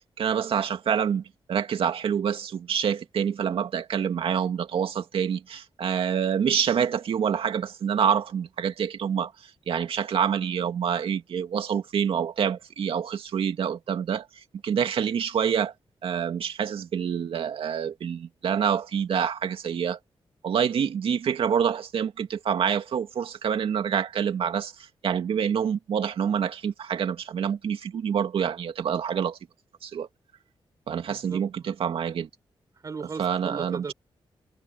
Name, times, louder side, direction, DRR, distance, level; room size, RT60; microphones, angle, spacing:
voice 1, 0.2-1.2 1.5-9.3 9.7-14.3 14.6-15.7 16.0-20.0 20.4-24.7 25.0-29.4 29.8-30.1 30.9-32.3 33.2-33.8, right 8 dB, 75° right, 2.3 m, -27 dB
voice 2, 31.1-31.7 32.8-33.9, right 5 dB, 35° right, 5.8 m, -37 dB
wide cardioid pair, 160°, 10 cm